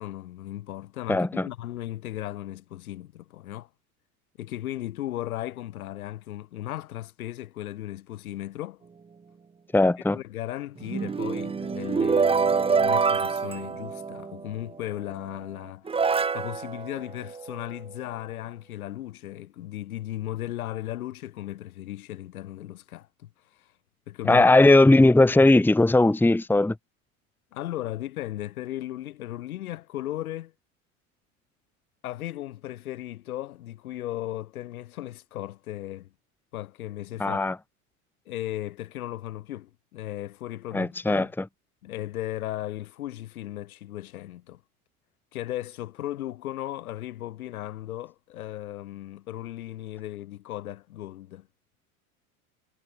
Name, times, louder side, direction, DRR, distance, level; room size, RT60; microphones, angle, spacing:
voice 1, 0.0-3.7 4.4-8.8 10.1-15.9 16.3-23.7 24.1-24.5 27.5-30.5 32.0-36.1 36.5-37.4 38.3-41.3 41.8-44.6 45.3-51.5, left 14 dB, 75° left, 7.9 m, -36 dB
voice 2, 1.1-1.5 9.7-10.2 24.2-26.7 37.2-37.5 40.7-41.4, left 2 dB, 5° left, 1.6 m, -18 dB
sound 1, 10.8-14.5 15.3-15.4 15.9-17.8, right 5 dB, 15° right, 1.1 m, -26 dB
hypercardioid pair, 100°, 44 cm